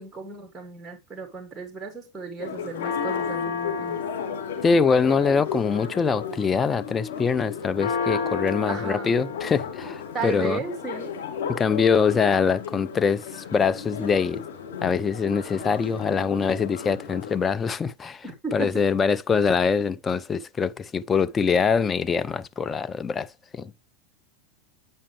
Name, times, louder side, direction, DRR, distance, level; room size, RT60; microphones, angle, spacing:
voice 1, 0.0-4.0 8.7-9.2 10.1-11.1 18.2-18.8, right 4 dB, 15° right, 1.7 m, -34 dB
Church bell, 2.4-17.4, left 6 dB, 65° left, 3.0 m, -33 dB
voice 2, 4.6-10.6 11.5-14.4 14.8-18.2 18.5-23.7, left 5 dB, 25° left, 0.5 m, -24 dB
8.6 x 5.5 x 3.2 m
figure-of-eight pair, 85°, 0 cm